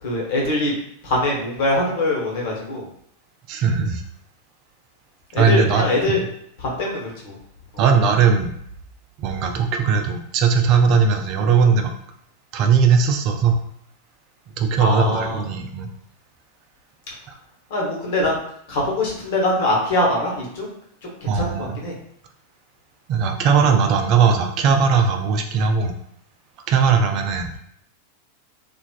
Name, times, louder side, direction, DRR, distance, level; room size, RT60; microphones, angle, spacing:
voice 1, 0.0-0.7 1.0-2.8 5.3-6.2 6.6-7.4 7.7-7.8 14.8-15.5 17.7-18.4 18.7-20.7 21.2-21.9, left 1 dB, 50° left, -3 dB, 1.0 m, -23 dB
voice 2, 3.5-4.0 5.4-6.2 7.8-8.5 9.2-11.9 12.5-13.6 14.6-15.9 21.3-21.8 23.1-25.9 26.7-27.5, right 5 dB, 40° right, 5 dB, 0.4 m, -18 dB
3.1 x 2.4 x 2.4 m, 0.70 s
figure-of-eight pair, 90°, 0 cm